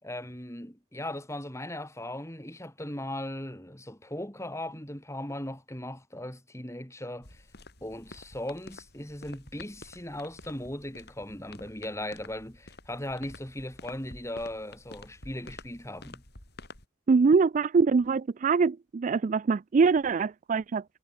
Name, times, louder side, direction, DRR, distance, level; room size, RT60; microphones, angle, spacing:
voice 1, 0.0-7.4 7.8-16.2, left 1 dB, 15° left, 6.4 m, -38 dB
sound 1, 7.2-16.9, left 2 dB, 55° left, 7.4 m, -50 dB
voice 2, 17.1-20.8, right 4 dB, 40° right, 0.3 m, -23 dB
head